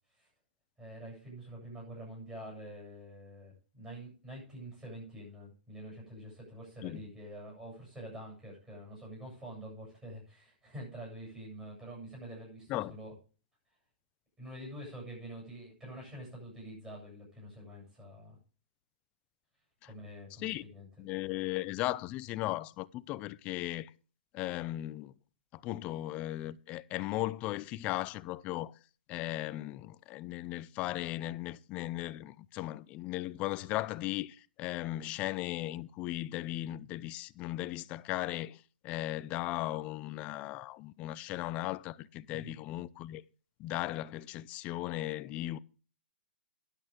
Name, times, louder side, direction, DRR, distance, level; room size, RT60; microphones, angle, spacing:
voice 1, 0.8-13.1 14.4-18.4 19.8-20.9 42.3-42.5, right 1 dB, 10° right, 7.9 m, -46 dB
voice 2, 21.0-23.9 24.3-25.1 25.5-28.8 29.1-43.2 43.6-45.6, left 16 dB, 25° left, 0.5 m, -37 dB
12.0 x 11.0 x 3.7 m
hypercardioid pair, 155°, 5 cm